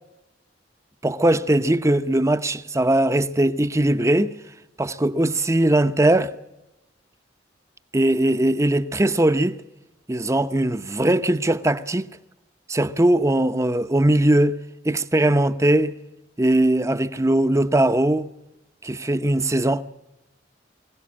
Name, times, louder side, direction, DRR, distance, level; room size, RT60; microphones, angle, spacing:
voice 1, 1.0-4.4 4.8-6.3 7.9-9.6 10.1-12.1 12.7-14.6 14.8-15.9 16.4-18.3 18.8-19.8, right 1 dB, 15° right, 0.8 m, -20 dB
23.5 x 17.0 x 8.5 m
head